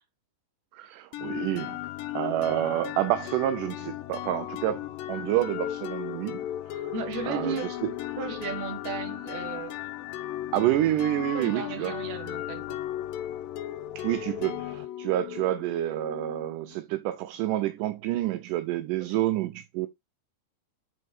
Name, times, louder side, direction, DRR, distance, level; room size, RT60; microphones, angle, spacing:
voice 1, 0.7-1.8 2.1-6.4 6.7-6.9 7.3-7.9 10.5-12.0 14.0-19.9, right 14 dB, 80° right, 2.1 m, -28 dB
sound 1, 1.1-16.7, left 13 dB, 90° left, 2.3 m, -36 dB
voice 2, 6.9-7.8 8.2-9.8 11.3-12.8 19.0-19.2, right 5 dB, 60° right, 2.7 m, -35 dB
8.4 x 4.2 x 4.6 m
omnidirectional pair, 4.0 m